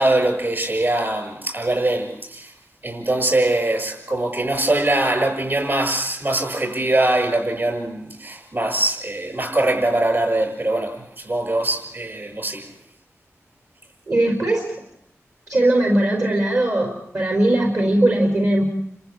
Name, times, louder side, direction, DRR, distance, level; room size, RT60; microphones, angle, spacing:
voice 1, 0.0-2.5 2.8-12.7, right 2 dB, 45° right, 6 dB, 7.3 m, -22 dB
voice 2, 14.1-14.7 15.5-18.7, right 1 dB, 65° right, 1 dB, 4.7 m, -19 dB
30.0 x 15.0 x 8.8 m, 0.75 s
wide cardioid pair, 75°, 5 cm